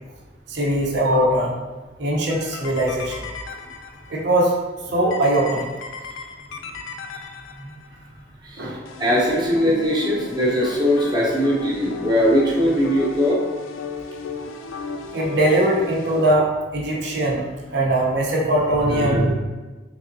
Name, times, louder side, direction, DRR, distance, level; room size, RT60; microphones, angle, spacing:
voice 1, 0.5-1.5 2.0-3.2 4.1-4.5 4.9-5.7 8.6-8.8 15.1-16.5 16.7-17.4 17.7-19.2, right 1 dB, 55° right, -3 dB, 0.6 m, -20 dB
sound 1, 2.3-4.2 5.1-7.9 8.8-16.4, left 4 dB, 80° left, 0.3 m, -34 dB
voice 2, 9.0-13.4 18.8-19.3, equal, 20° right, -5 dB, 0.7 m, -20 dB
3.5 x 3.3 x 2.6 m, 1.2 s
head